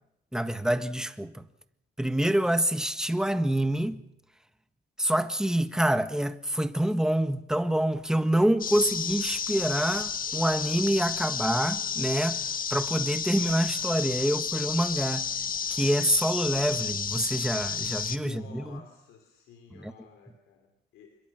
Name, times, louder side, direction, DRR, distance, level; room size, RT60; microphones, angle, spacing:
voice 1, 0.3-1.5 2.0-4.0 5.0-12.4 12.7-15.3 15.7-18.8 19.7-19.9, right 1 dB, 5° right, 1.5 m, -26 dB
sound 1, 8.6-18.2, left 7 dB, 45° left, 1.5 m, -31 dB
voice 2, 18.1-21.2, left 7 dB, 90° left, 3.3 m, -51 dB
26.5 x 22.5 x 6.4 m
cardioid pair, 90°, 20 cm